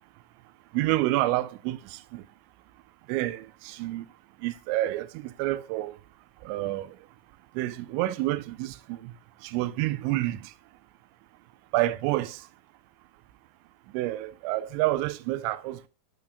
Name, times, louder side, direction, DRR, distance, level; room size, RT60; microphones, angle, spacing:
voice 1, 0.7-2.2 3.1-4.1 4.4-6.0 6.4-7.0 7.5-9.2 9.4-10.5 11.7-12.5 13.9-15.9, right 16 dB, 85° right, 2.8 m, -29 dB
9.2 x 8.8 x 2.6 m
omnidirectional pair, 5.4 m